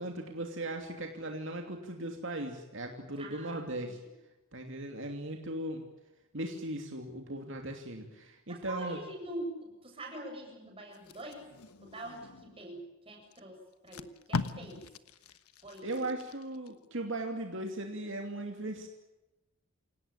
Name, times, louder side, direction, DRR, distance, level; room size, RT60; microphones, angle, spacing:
voice 1, 0.0-4.0 4.5-5.8 6.3-9.0 15.8-18.9, right 1 dB, 60° right, 3 dB, 2.8 m, -38 dB
voice 2, 3.2-3.9 8.5-11.4 11.8-14.9 15.6-16.1, right 1 dB, 25° right, 1 dB, 7.7 m, -44 dB
Packing tape duct tape, 10.9-12.6 13.3-13.4 13.7-16.7 17.1-17.4, left 3 dB, 90° left, 1.3 m, -40 dB
28.0 x 18.0 x 8.9 m, 1.0 s
head